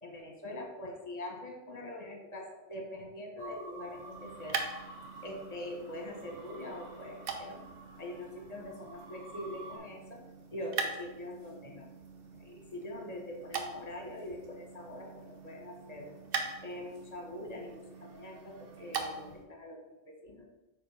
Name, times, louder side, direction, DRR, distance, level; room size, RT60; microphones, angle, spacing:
voice 1, 0.0-4.6 5.2-7.6 8.0-10.2 10.5-11.9 12.4-16.1 16.6-20.5, left 1 dB, 35° left, 2 dB, 1.2 m, -43 dB
sound 1, 3.4-9.8, right 2 dB, 35° right, 1.4 m, -51 dB
sound 2, 3.8-19.5, right 5 dB, 55° right, 0.9 m, -43 dB
6.5 x 3.7 x 5.7 m, 1.0 s
omnidirectional pair, 1.3 m